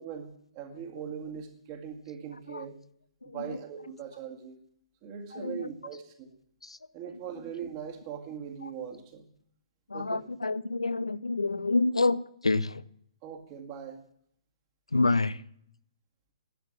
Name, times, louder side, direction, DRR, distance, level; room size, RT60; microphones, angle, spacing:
voice 1, 0.0-2.8 3.2-4.6 5.0-6.3 6.9-9.3 9.9-10.2 13.2-14.0, right 8 dB, 35° right, 2.0 m, -40 dB
voice 2, 3.2-3.6 5.3-5.7 6.6-6.8 8.6-8.7 9.9-12.8 14.9-15.4, left 3 dB, 85° left, 0.5 m, -28 dB
11.5 x 7.5 x 7.2 m
figure-of-eight pair, 125°, 3 cm